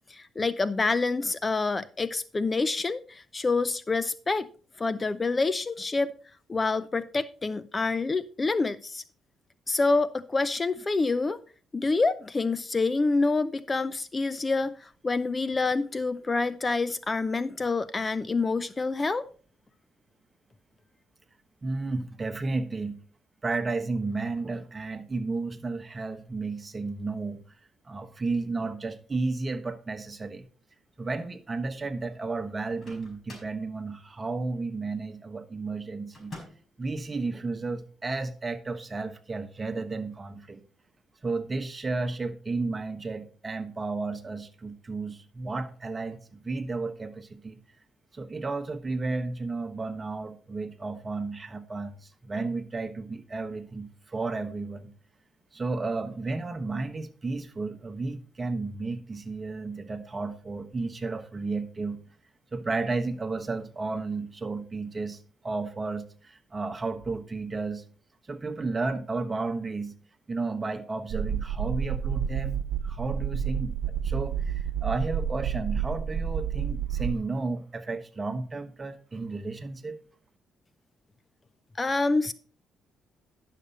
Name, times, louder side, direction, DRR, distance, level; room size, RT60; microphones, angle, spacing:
voice 1, 0.1-4.5 4.8-6.1 6.5-9.0 9.7-11.4 11.7-19.3 81.8-82.3, left 3 dB, 25° left, 0.5 m, -27 dB
voice 2, 21.6-23.0 23.4-27.4 27.8-30.5 31.0-36.4 36.8-40.6 41.2-47.6 48.1-54.9 55.5-62.0 62.5-67.8 68.3-69.9 70.3-73.8 74.0-80.0, right 3 dB, 30° right, 1.2 m, -33 dB
Microwave oven, 32.6-33.6 36.1-36.8, left 2 dB, 45° left, 5.1 m, -46 dB
sound 1, 71.1-77.2, right 8 dB, 85° right, 0.5 m, -30 dB
11.0 x 6.7 x 4.1 m
cardioid pair, 90°, 0 cm